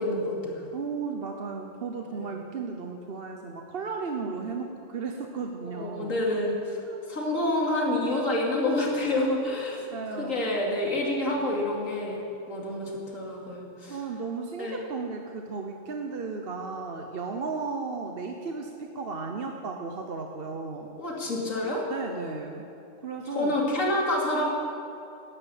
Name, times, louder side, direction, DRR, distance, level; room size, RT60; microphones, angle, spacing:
voice 1, 0.0-0.6 2.1-2.3 5.6-6.8 7.1-9.9 10.2-12.2 12.5-14.0 14.6-14.8 21.0-21.9 23.3-24.5, left 1 dB, 85° left, -2 dB, 2.8 m, -28 dB
voice 2, 0.7-6.2 6.8-7.0 9.2-9.3 9.9-10.4 11.3-11.5 13.9-20.9 21.9-22.6 23.0-23.6, right 4 dB, 50° right, 3 dB, 1.0 m, -35 dB
12.5 x 10.5 x 8.2 m, 2.7 s
omnidirectional pair, 1.3 m